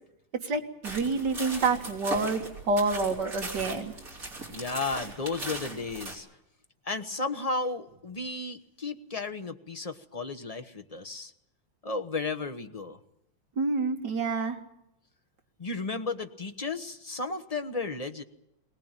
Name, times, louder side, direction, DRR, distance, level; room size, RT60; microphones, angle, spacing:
voice 1, 0.4-3.9 13.6-14.6, right 3 dB, 65° right, 4 dB, 2.4 m, -28 dB
sound 1, 0.8-6.1, right 2 dB, 45° right, 4.4 m, -39 dB
voice 2, 4.5-6.3 6.8-11.3 11.8-13.0 15.6-18.2, left 3 dB, 25° left, 7 dB, 0.8 m, -34 dB
22.0 x 19.0 x 8.9 m, 0.84 s
omnidirectional pair, 2.1 m